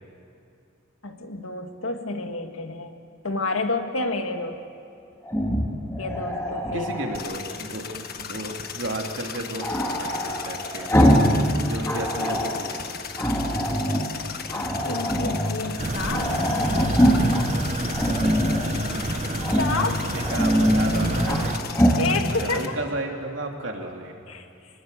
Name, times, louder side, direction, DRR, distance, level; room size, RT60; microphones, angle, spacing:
voice 1, 1.0-4.6 6.0-6.9 14.5-16.5 16.7-17.1 19.6-20.1 22.0-22.8 24.3-24.5, left 3 dB, 85° left, 5 dB, 2.0 m, -29 dB
Growling, 5.2-7.2 9.6-11.4 11.7-12.6 13.2-14.1 14.5-15.5 15.8-15.9 16.1-17.4 17.9-18.7 19.4-19.8 20.2-21.4 21.7-22.0, equal, 15° left, 2.7 m, -23 dB
voice 2, 6.7-10.9 11.3-12.8 18.2-19.2 20.1-21.6 22.3-24.2, right 1 dB, 65° right, 2 dB, 2.8 m, -33 dB
sound 1, 7.1-22.7, left 6 dB, 45° left, 1.5 m, -36 dB
sound 2, 15.8-21.6, right 2 dB, 35° right, 0.9 m, -30 dB
25.5 x 21.0 x 8.3 m, 2.6 s
head